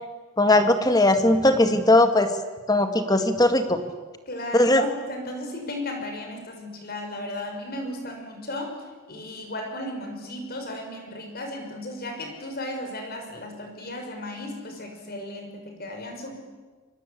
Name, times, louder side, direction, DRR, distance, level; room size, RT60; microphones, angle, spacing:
voice 1, 0.4-2.3 2.7-3.8 4.5-4.8, left 1 dB, 15° left, 7 dB, 1.9 m, -19 dB
voice 2, 4.3-8.7 9.1-16.4, left 1 dB, 45° left, 4 dB, 6.1 m, -35 dB
28.5 x 24.5 x 8.6 m, 1.4 s
head